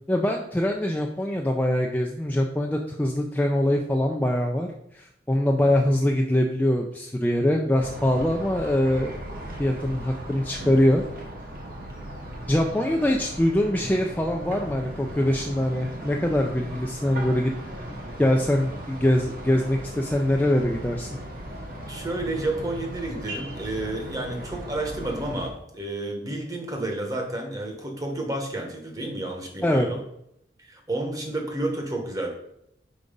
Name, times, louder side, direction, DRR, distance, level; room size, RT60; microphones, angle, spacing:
voice 1, 0.1-4.7 4.9-9.2 9.6-11.0 12.5-17.5 17.9-21.1 29.6-29.9, left 1 dB, 10° left, 1 dB, 0.4 m, -23 dB
sound 1, 7.8-25.5, right 1 dB, 55° right, 1.5 m, -37 dB
voice 2, 21.9-30.0 30.6-32.3, right 2 dB, 20° right, 2 dB, 1.1 m, -31 dB
5.4 x 4.7 x 5.2 m, 0.78 s
head